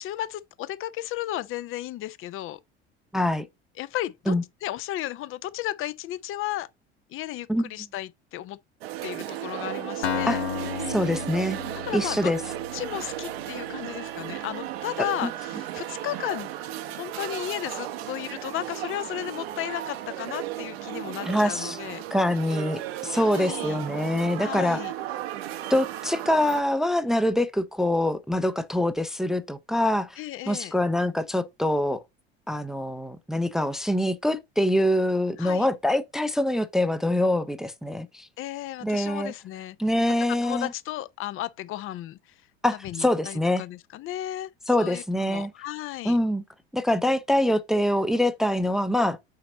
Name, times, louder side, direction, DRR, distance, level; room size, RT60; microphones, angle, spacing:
voice 1, 0.0-2.6 3.8-4.3 4.6-6.7 7.1-8.6 9.0-10.4 11.8-12.3 12.7-16.5 16.9-22.0 23.1-23.8 24.4-24.9 30.2-30.7 35.4-35.7 38.4-39.8 40.4-42.2 42.8-44.5 44.8-46.2, left 14 dB, 40° left, 0.6 m, -34 dB
voice 2, 3.1-3.5 4.3-4.4 7.5-7.7 10.3-10.4 10.9-11.6 11.9-12.4 15.0-15.3 21.2-21.8 22.1-24.8 25.7-32.0 32.5-38.3 38.8-39.3 39.8-40.7 42.6-43.6 44.7-45.5 46.0-46.4 46.7-49.2, left 1 dB, ahead, 0.5 m, -25 dB
sound 1, 8.8-26.6, right 13 dB, 70° right, 0.8 m, -35 dB
Acoustic guitar, 10.0-13.9, left 8 dB, 80° left, 0.9 m, -33 dB
5.8 x 4.2 x 3.9 m
figure-of-eight pair, 70°, 33 cm